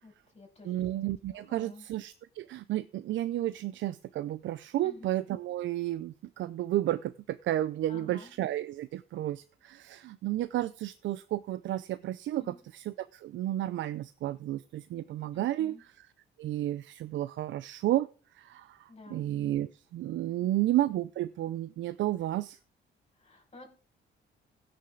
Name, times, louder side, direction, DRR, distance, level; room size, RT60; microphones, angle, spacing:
voice 1, 0.0-0.8 1.3-1.8 4.8-5.1 7.9-8.3 12.4-12.6 15.3-15.8 18.9-19.2 20.4-20.7 23.2-23.7, left 2 dB, 30° left, 1 dB, 5.4 m, -51 dB
voice 2, 0.6-16.1 16.4-18.1 18.3-22.6, right 14 dB, 70° right, 16 dB, 0.5 m, -32 dB
16.0 x 6.6 x 3.8 m, 0.38 s
cardioid pair, 90°, 20 cm